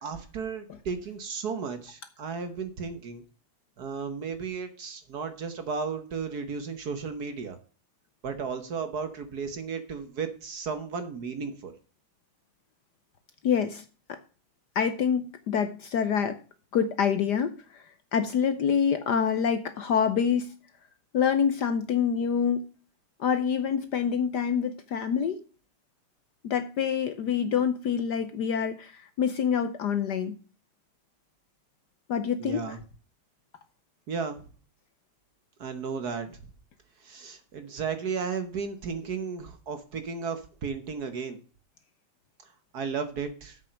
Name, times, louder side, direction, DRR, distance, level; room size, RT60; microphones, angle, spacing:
voice 1, 0.0-3.2 3.8-7.6 8.2-11.7 32.4-32.8 34.1-34.4 35.6-36.4 37.0-41.4 42.4-43.6, right 5 dB, 55° right, 9 dB, 1.4 m, -34 dB
voice 2, 13.4-14.2 14.7-16.4 16.7-17.9 18.1-20.5 21.1-22.7 23.2-25.4 26.4-30.4 32.1-32.6, left 7 dB, 65° left, 10 dB, 1.1 m, -26 dB
8.1 x 6.4 x 6.3 m, 0.38 s
omnidirectional pair, 2.4 m